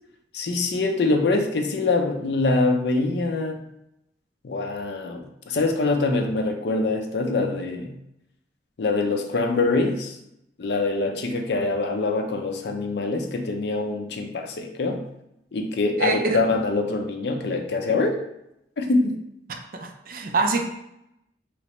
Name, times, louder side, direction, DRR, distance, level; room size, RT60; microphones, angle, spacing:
voice 1, 0.3-3.6 4.4-7.9 8.8-10.2 10.6-15.0 15.5-18.2 18.8-19.2, left 3 dB, 70° left, 4 dB, 0.5 m, -24 dB
voice 2, 16.0-16.4 19.5-20.6, right 3 dB, 50° right, 4 dB, 0.4 m, -25 dB
3.2 x 3.0 x 2.9 m, 0.82 s
head